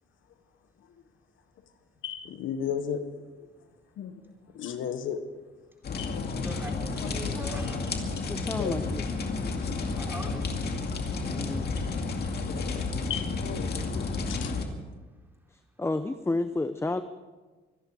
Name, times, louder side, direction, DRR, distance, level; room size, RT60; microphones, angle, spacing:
voice 1, 2.0-3.0 4.0-4.1 4.5-5.2 6.0-6.5 7.0-7.1 8.0-8.2 8.6-8.8 9.4-10.0 12.5-14.5, left 8 dB, 80° left, 1.4 m, -35 dB
sound 1, 5.8-14.7, left 4 dB, 55° left, 2.3 m, -31 dB
voice 2, 6.3-7.8 9.9-10.9, right 1 dB, 10° right, 4.3 m, -41 dB
voice 3, 8.3-9.0 11.2-11.7 15.5-17.0, left 2 dB, 15° left, 0.7 m, -31 dB
25.0 x 11.0 x 4.9 m
cardioid pair, 90°, 20 cm